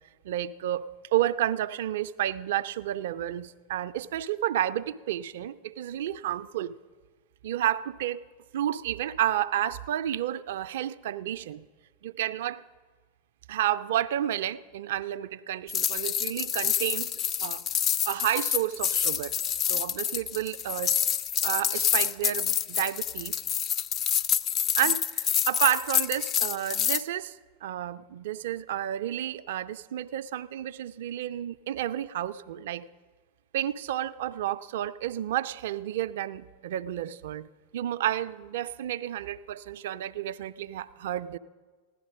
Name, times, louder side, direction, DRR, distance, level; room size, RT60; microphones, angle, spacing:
voice 1, 0.2-0.9 1.1-6.7 7.4-8.2 8.5-11.7 12.0-12.6 13.5-17.1 17.4-17.6 18.1-19.4 19.7-21.0 21.4-23.4 24.8-27.4 27.6-32.9 33.5-41.4, right 12 dB, 55° right, 14 dB, 0.4 m, -31 dB
sound 1, 15.7-27.0, left 9 dB, 30° left, 0.4 m, -27 dB
15.5 x 11.5 x 6.2 m, 1.5 s
figure-of-eight pair, 90°, 0 cm